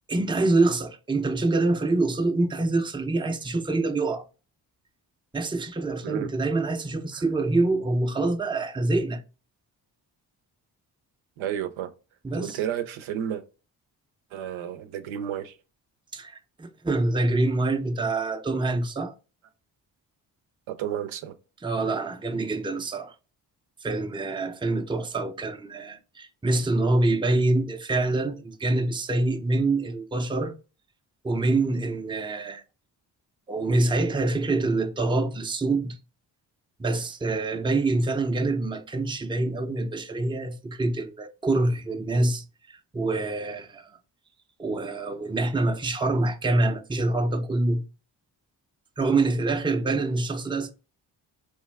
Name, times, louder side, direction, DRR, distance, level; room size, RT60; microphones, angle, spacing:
voice 1, 0.1-4.2 5.3-9.2 12.2-12.6 16.1-19.1 21.6-23.1 23.8-30.5 31.2-32.6 33.5-36.0 36.8-43.9 44.6-47.8 49.0-50.7, right 2 dB, 10° right, 0.5 m, -25 dB
voice 2, 11.4-11.9 12.3-13.4 14.3-15.6 20.7-21.3, right 10 dB, 80° right, 0.6 m, -31 dB
3.0 x 2.2 x 3.3 m
supercardioid pair, 45°, 47 cm